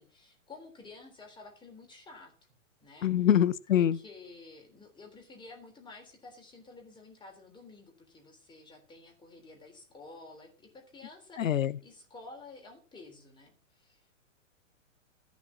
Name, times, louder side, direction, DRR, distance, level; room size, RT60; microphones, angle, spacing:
voice 1, 0.0-2.3 2.8-3.3 3.7-14.1, left 3 dB, 10° left, 3.5 m, -51 dB
voice 2, 3.0-4.0 11.4-11.7, left 10 dB, 85° left, 0.8 m, -24 dB
13.5 x 6.1 x 7.2 m
hypercardioid pair, 135°, 39 cm